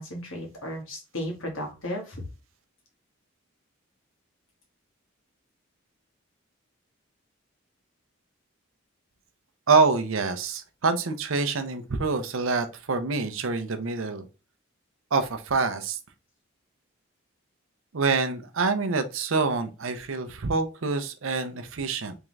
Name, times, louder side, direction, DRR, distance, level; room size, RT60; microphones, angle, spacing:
voice 1, 0.0-2.3, equal, 75° left, 1.7 m, -34 dB
voice 2, 9.7-14.3 15.1-16.0 17.9-22.2, right 4 dB, 75° right, 0.7 m, -26 dB
3.7 x 3.5 x 3.2 m
head